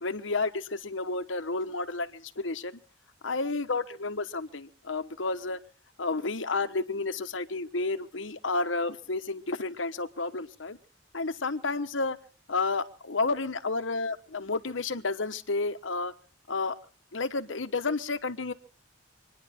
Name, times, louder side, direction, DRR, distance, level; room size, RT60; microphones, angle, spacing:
voice 1, 0.0-2.7 3.2-5.6 6.0-10.8 11.1-12.2 12.5-16.1 16.5-16.7 17.1-18.5, left 3 dB, 75° left, 10 dB, 1.2 m, -31 dB
26.0 x 10.5 x 4.4 m, 0.41 s
head